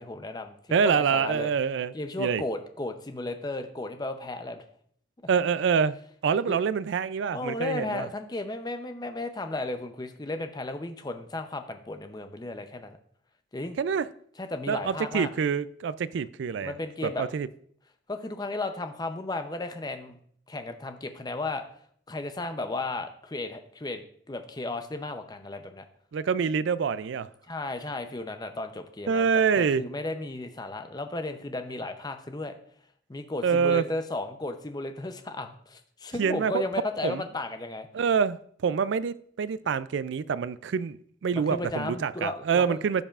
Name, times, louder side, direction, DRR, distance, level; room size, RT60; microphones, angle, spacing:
voice 1, 0.0-0.5 0.8-1.5 1.9-4.6 6.5-6.6 7.3-13.0 13.5-13.8 14.4-15.3 16.6-17.3 18.1-20.2 20.5-21.6 22.1-25.8 27.5-29.3 29.6-32.6 33.1-37.9 41.3-42.8, left 2 dB, 20° left, 0.6 m, -34 dB
voice 2, 0.7-1.9 2.2-2.4 5.3-5.9 6.2-8.1 13.8-14.1 14.7-16.7 17.0-17.5 26.1-27.3 29.1-29.9 33.4-33.8 36.2-36.6 37.0-37.2 37.9-43.0, right 6 dB, 70° right, 0.3 m, -26 dB
14.5 x 5.4 x 2.4 m
head